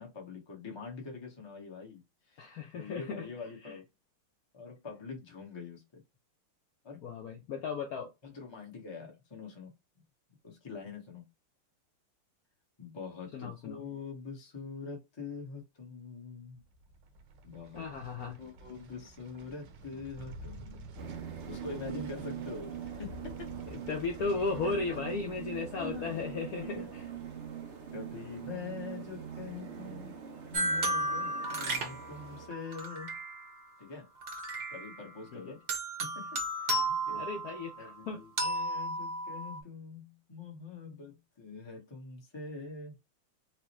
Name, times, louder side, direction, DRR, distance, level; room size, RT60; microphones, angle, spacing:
voice 1, 0.0-2.0 2.3-3.9 4.5-6.0 6.8-7.1 8.2-10.0 10.4-11.3 12.8-16.6 17.4-17.9 18.2-21.2 21.5-23.6 24.6-25.0 25.7-26.2 26.6-26.9 27.9-30.2 30.5-33.2 33.8-34.1 34.7-35.6 36.0-37.3 37.8-43.0, left 5 dB, 30° left, 0.5 m, -44 dB
voice 2, 2.4-3.3 3.6-3.8 7.0-8.1 13.3-13.8 17.7-18.4 22.3-22.4 23.7-27.0 35.3-35.5 36.7-38.2, left 4 dB, 90° left, 0.8 m, -36 dB
sound 1, 16.5-29.7 30.1-30.2, right 2 dB, 65° right, 1.3 m, -51 dB
sound 2, 21.0-32.5, right 8 dB, 85° right, 0.6 m, -43 dB
sound 3, 30.5-33.6 34.2-35.2 35.7-37.9 38.4-39.6, right 2 dB, 50° right, 0.8 m, -34 dB
4.7 x 2.1 x 3.0 m
omnidirectional pair, 2.4 m